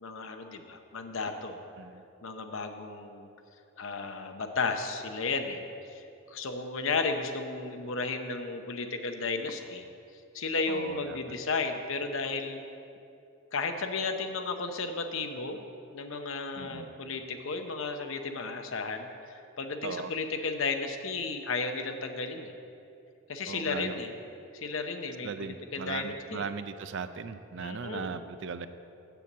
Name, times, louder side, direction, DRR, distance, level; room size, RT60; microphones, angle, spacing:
voice 1, 0.0-1.6 2.2-3.3 3.8-5.6 5.9-9.9 10.3-12.6 13.5-15.6 15.9-22.5 23.3-24.2 24.5-26.5 27.6-28.2, left 4 dB, 65° left, 6 dB, 0.7 m, -34 dB
voice 2, 10.7-11.2 16.6-17.0 19.8-20.1 23.5-23.9 25.2-28.7, right 5 dB, 55° right, 11 dB, 0.4 m, -38 dB
7.5 x 6.9 x 7.2 m, 2.7 s
head